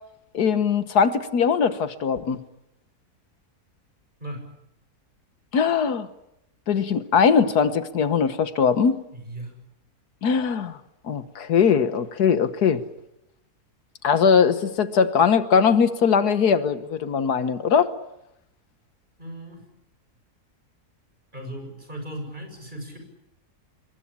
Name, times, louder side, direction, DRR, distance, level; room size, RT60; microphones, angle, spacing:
voice 1, 0.3-2.4 5.5-6.1 6.7-9.0 10.2-10.8 11.1-12.8 14.0-17.9, left 6 dB, 80° left, 1.8 m, -20 dB
voice 2, 9.1-9.5 19.2-19.7 21.3-23.0, right 1 dB, 30° right, 7.3 m, -37 dB
27.5 x 22.0 x 8.6 m
omnidirectional pair, 1.6 m